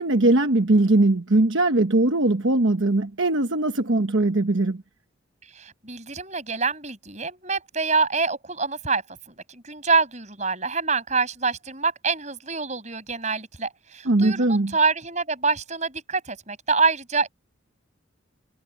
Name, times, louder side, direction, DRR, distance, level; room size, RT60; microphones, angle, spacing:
voice 1, 0.0-4.8 14.0-14.8, right 2 dB, 70° right, 1.1 m, -20 dB
voice 2, 5.5-9.0 9.3-17.3, right 4 dB, 35° right, 6.9 m, -26 dB
head